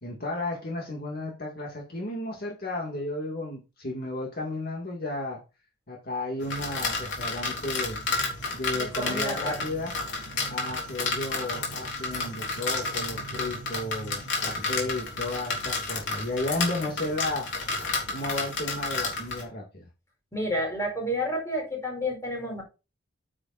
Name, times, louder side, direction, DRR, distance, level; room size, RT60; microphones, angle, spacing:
voice 1, 0.0-5.4 5.9-8.0 8.5-9.9 10.5-17.5 18.1-19.8, left 2 dB, 50° left, 2.3 m, -33 dB
sound 1, 6.4-19.4, left 3 dB, 65° left, 3.8 m, -31 dB
voice 2, 8.7-9.6 20.3-22.6, equal, 15° left, 4.6 m, -30 dB
9.1 x 8.8 x 2.6 m
head